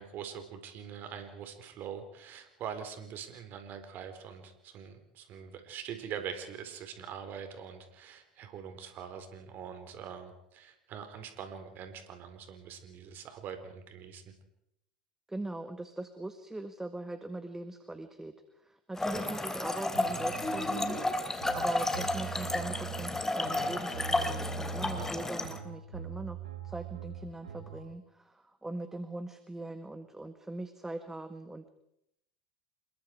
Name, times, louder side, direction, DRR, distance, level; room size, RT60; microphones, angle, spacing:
voice 1, 0.0-14.2 24.9-25.1, right 8 dB, 50° right, 7 dB, 4.5 m, -43 dB
voice 2, 15.3-18.3 18.6-21.0 21.5-26.4 26.6-31.7, right 2 dB, 10° right, 9 dB, 1.7 m, -41 dB
Trickle dribble / Fill (with liquid), 18.9-25.6, left 2 dB, 10° left, 3.1 m, -32 dB
sound 1, 19.9-27.8, right 6 dB, 90° right, 2.6 m, -42 dB
28.0 x 22.0 x 4.8 m, 0.78 s
hypercardioid pair, 85°, 4 cm